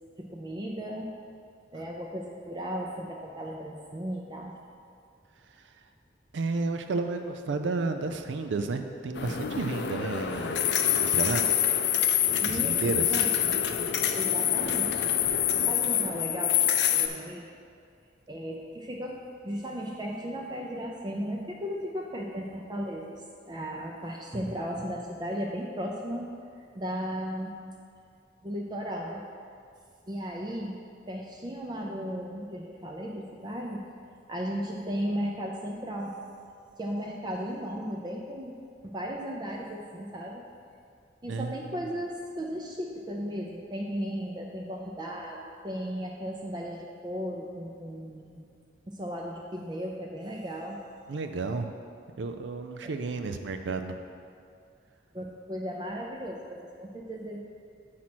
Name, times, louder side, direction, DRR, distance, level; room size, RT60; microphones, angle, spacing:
voice 1, 0.2-1.1 1.7-4.5 12.4-13.5 14.1-15.1 15.7-17.5 18.3-26.3 26.8-27.6 28.4-29.2 30.1-30.8 31.1-33.8 34.3-36.1 36.8-38.6 38.8-40.4 41.2-48.4 48.9-50.8 52.8-52.9 55.1-57.4, equal, 25° right, -1 dB, 0.5 m, -35 dB
voice 2, 6.3-11.4 12.5-13.3 41.3-41.5 51.1-51.7 52.2-54.0, right 3 dB, 80° right, 6 dB, 0.4 m, -32 dB
sound 1, 9.1-17.1, left 9 dB, 65° left, 0.4 m, -26 dB
7.5 x 4.2 x 6.0 m, 2.3 s
head